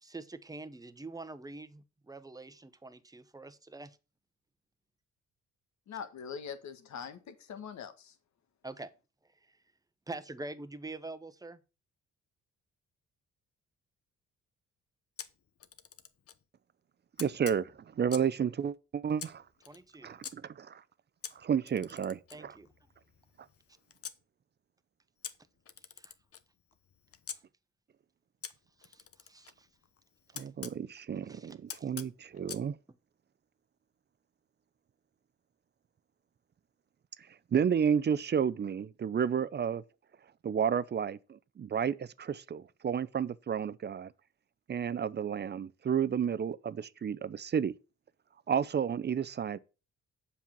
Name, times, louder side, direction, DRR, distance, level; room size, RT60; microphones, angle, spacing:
voice 1, 0.0-4.0 8.6-8.9 9.4-9.6 10.1-11.6 19.7-20.1 22.3-22.7 26.0-26.1 27.3-27.4 28.8-29.7 31.2-31.9, right 2 dB, 10° right, 1.0 m, -45 dB
voice 2, 5.9-8.1, left 7 dB, 65° left, 1.5 m, -43 dB
Camera, 15.2-16.4 17.2-18.4 19.2-20.3 21.2-24.2 25.2-27.4 28.4-30.8 31.7-32.7, left 8 dB, 50° left, 1.0 m, -47 dB
voice 3, 17.2-19.4 20.0-20.8 21.4-22.5 30.4-32.8 37.5-39.8 40.4-44.1 44.7-47.7 48.5-49.6, right 7 dB, 35° right, 0.6 m, -31 dB
7.4 x 5.6 x 7.4 m
cardioid pair, 90°, 30 cm